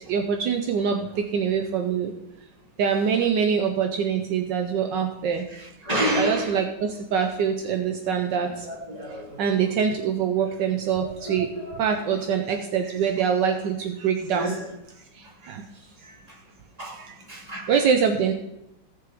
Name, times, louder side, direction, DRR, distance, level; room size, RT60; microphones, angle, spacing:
voice 1, 0.1-2.1 2.8-5.4 6.2-8.7 9.4-11.5 11.8-14.5 15.5-15.6 16.0-16.2 17.0-17.1 17.7-18.3, right 7 dB, 75° right, 4 dB, 1.4 m, -24 dB
voice 2, 5.5-6.6 8.4-9.7 11.0-12.2 14.3-14.7 15.4-15.5 16.3-16.4 16.8-17.8, equal, 20° right, -5 dB, 3.0 m, -31 dB
17.0 x 6.8 x 3.5 m, 0.88 s
omnidirectional pair, 2.0 m